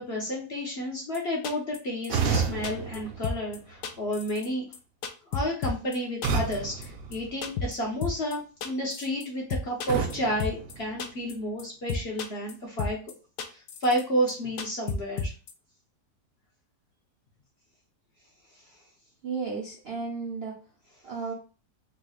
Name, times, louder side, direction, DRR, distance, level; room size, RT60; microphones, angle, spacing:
voice 1, 0.0-4.7 5.3-13.0 13.5-15.3, equal, 50° left, -2 dB, 0.8 m, -31 dB
sound 1, 1.1-1.2 1.4-1.8 2.0-2.1 2.3-3.0 3.2-3.6 3.8-4.5 4.7-4.8 5.0-6.0 6.2-6.6 6.8-6.9 7.1-7.2 7.4-7.8 8.0-8.4 8.6-9.2 9.5-10.1 10.4-10.7 11.0-11.3 11.6-11.7 11.9-12.5 12.8-13.1 13.4-14.0 14.3-14.4 14.6-15.5, left 4 dB, 75° left, 1.1 m, -32 dB
sound 2, 2.1-4.1 6.2-7.9 9.9-11.5, right 5 dB, 90° right, 1.2 m, -32 dB
voice 2, 19.2-20.5 21.0-21.3, right 4 dB, 55° right, -3 dB, 0.7 m, -33 dB
4.0 x 3.0 x 2.3 m, 0.35 s
omnidirectional pair, 1.8 m